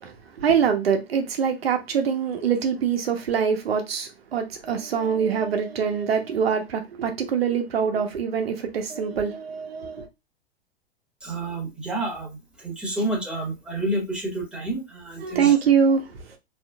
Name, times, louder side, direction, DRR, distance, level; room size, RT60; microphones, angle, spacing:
voice 1, 0.0-10.1 15.2-16.2, right 7 dB, 65° right, 1.2 m, -24 dB
voice 2, 11.2-15.5, right 1 dB, 5° right, 1.6 m, -29 dB
4.6 x 3.4 x 2.4 m
figure-of-eight pair, 100°, 32 cm